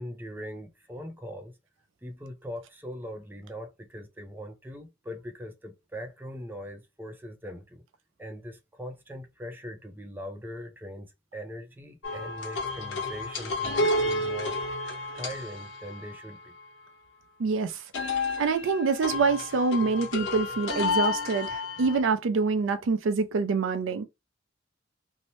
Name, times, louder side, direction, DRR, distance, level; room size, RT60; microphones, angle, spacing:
voice 1, 0.0-1.6 2.0-7.8 8.2-14.6 15.1-16.5, equal, 10° right, 0.5 m, -41 dB
sound 1, 12.0-16.7 17.9-22.0, left 2 dB, 80° left, 0.9 m, -31 dB
voice 2, 17.4-17.8 18.4-24.0, right 4 dB, 80° right, 0.4 m, -26 dB
2.7 x 2.0 x 3.0 m
head